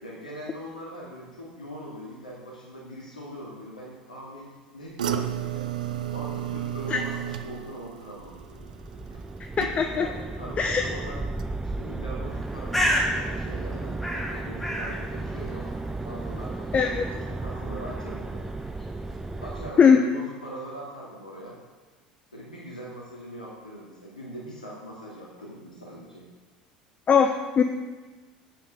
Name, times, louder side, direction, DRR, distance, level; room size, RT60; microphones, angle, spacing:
voice 1, 0.0-5.7 6.1-8.4 9.1-9.2 9.9-11.2 11.8-18.5 19.4-21.6 22.3-26.3, right 1 dB, 85° left, -6 dB, 2.4 m, -41 dB
sound 1, 5.0-10.2 10.5-11.0 11.4-11.5, right 10 dB, 75° right, 0.7 m, -33 dB
sound 2, 8.2-19.7, right 3 dB, 15° right, 0.5 m, -34 dB
voice 2, 9.6-10.1 10.6-10.8 16.7-17.1 19.8-20.0 27.1-27.6, left 6 dB, 30° left, 5 dB, 0.9 m, -20 dB
Bird, 12.3-19.9, equal, 5° left, 3.3 m, -33 dB
9.9 x 8.7 x 6.5 m, 1.3 s
figure-of-eight pair, 70°, 4 cm